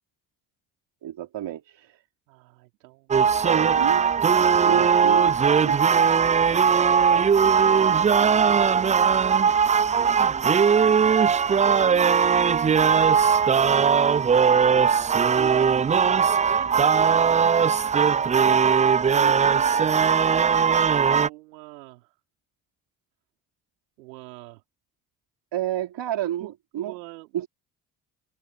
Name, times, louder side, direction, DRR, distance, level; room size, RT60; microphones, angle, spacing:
voice 1, 1.0-2.0 3.4-4.1 4.6-5.3 5.6-5.8 25.5-27.0 27.3-27.5, right 12 dB, 60° right, 4.5 m, -30 dB
voice 2, 2.3-3.2 3.7-5.1 6.6-8.9 9.2-10.4 11.7-13.0 15.3-17.4 18.0-22.2 24.0-24.6 26.4-27.5, right 23 dB, 80° right, 5.0 m, -42 dB
sound 1, 3.1-21.3, right 6 dB, 15° right, 0.4 m, -19 dB
open air
figure-of-eight pair, 45°, 48 cm